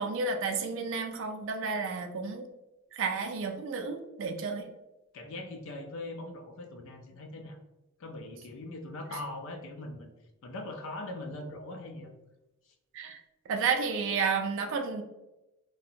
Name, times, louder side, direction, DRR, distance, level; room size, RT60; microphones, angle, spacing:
voice 1, 0.0-2.5 2.9-4.7 12.9-15.0, right 5 dB, 60° right, 5 dB, 0.3 m, -31 dB
voice 2, 5.1-7.6 8.0-10.1 10.4-12.1 12.6-12.7, left 2 dB, 65° left, 4 dB, 0.4 m, -41 dB
2.5 x 2.0 x 2.7 m, 0.96 s
head